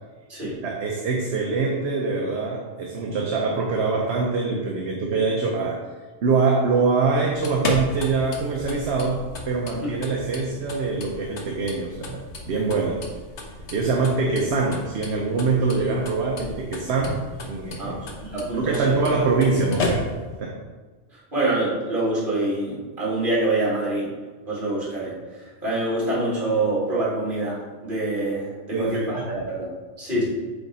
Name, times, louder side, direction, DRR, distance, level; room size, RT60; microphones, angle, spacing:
voice 1, 0.6-5.8 6.2-12.2 12.5-13.0 13.7-18.0 18.5-20.1 20.4-20.6 28.7-29.4 30.1-30.2, right 4 dB, 70° right, 0 dB, 1.0 m, -24 dB
sound 1, 7.2-20.4, left 2 dB, 75° left, 1.2 m, -34 dB
voice 2, 17.8-19.0 21.1-24.1 24.5-25.1 25.6-29.7 30.0-30.2, right 2 dB, 45° right, -6 dB, 2.3 m, -25 dB
7.8 x 3.5 x 4.1 m, 1.4 s
omnidirectional pair, 1.2 m